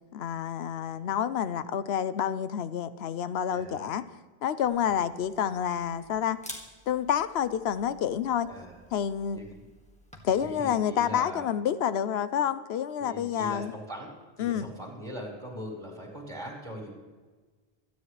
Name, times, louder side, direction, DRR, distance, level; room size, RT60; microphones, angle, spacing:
voice 1, 0.1-4.1 4.4-6.4 6.9-8.5 8.9-9.4 10.2-13.7 14.4-14.7, left 9 dB, 80° left, 14 dB, 0.9 m, -28 dB
voice 2, 3.5-3.9 8.5-8.8 9.3-9.5 10.4-11.4 13.0-14.1 14.4-16.9, equal, 25° right, -2 dB, 4.5 m, -40 dB
Camera, 4.6-10.5, equal, 5° left, 1.9 m, -50 dB
26.5 x 10.5 x 3.3 m, 1.3 s
omnidirectional pair, 1.1 m